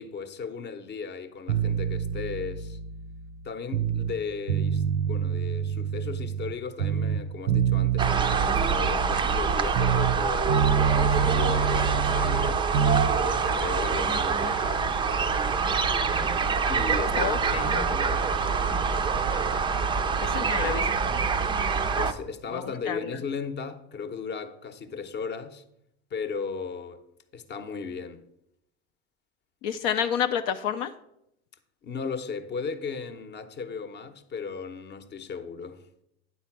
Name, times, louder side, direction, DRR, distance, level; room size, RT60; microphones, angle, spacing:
voice 1, 0.0-2.8 3.4-12.7 13.0-14.8 16.7-18.3 21.9-25.6 26.1-27.0 27.3-28.2 31.8-35.8, left 5 dB, 30° left, 0.8 m, -36 dB
sound 1, 1.5-4.2 4.5-6.5 6.8-10.2 10.5-13.1, right 8 dB, 90° right, 0.6 m, -27 dB
sound 2, 8.0-22.1, right 5 dB, 15° right, 0.4 m, -25 dB
voice 2, 17.2-17.8 20.2-20.9 22.5-23.2 29.6-30.9, left 8 dB, 65° left, 0.6 m, -29 dB
9.3 x 4.1 x 5.9 m
hypercardioid pair, 90°, 33 cm